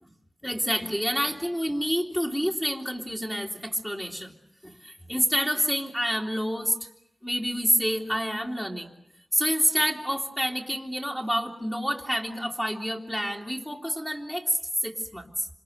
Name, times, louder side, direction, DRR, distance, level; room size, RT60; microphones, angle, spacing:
voice 1, 0.4-4.3 4.6-6.7 7.2-8.9 9.3-15.5, equal, 10° left, -1 dB, 2.8 m, -28 dB
27.0 x 27.0 x 6.5 m, 0.78 s
wide cardioid pair, 100°, 0 cm